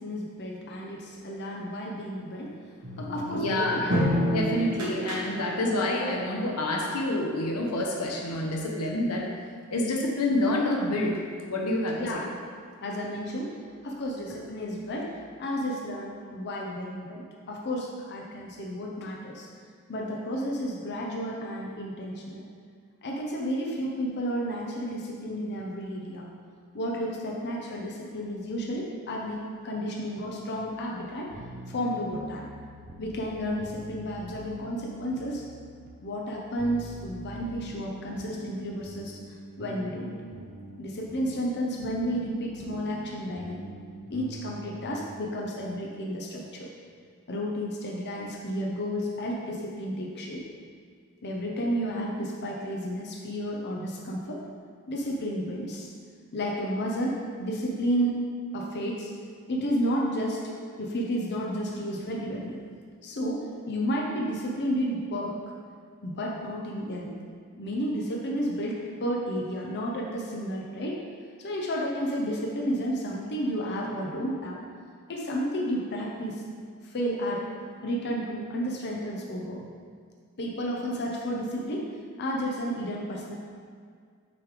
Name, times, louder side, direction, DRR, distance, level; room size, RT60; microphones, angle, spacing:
voice 1, 0.0-2.5 3.0-4.1 11.9-12.2 12.8-13.5 13.8-15.1 15.4-19.5 19.9-22.4 23.0-26.2 26.7-31.3 31.7-32.4 33.0-35.4 36.0-39.2 39.6-40.1 40.8-43.6 44.1-46.7 47.3-50.4 51.2-54.4 54.9-55.9 56.3-58.2 58.5-59.1 59.5-60.5 60.8-62.6 63.0-65.3 66.0-67.1 67.5-71.0 71.4-74.6 75.1-76.4 76.8-77.4 77.8-79.6 80.4-81.9 82.2-83.3, equal, 50° left, -2 dB, 0.7 m, -32 dB
sound 1, 2.8-5.8, equal, 90° right, 1.3 m, -29 dB
voice 2, 3.3-9.3 9.7-11.1 11.5-12.2, left 1 dB, 90° left, 0 dB, 0.9 m, -28 dB
sound 2, 31.3-45.4, right 1 dB, 45° right, 0.6 m, -45 dB
6.9 x 3.3 x 4.8 m, 2.1 s
head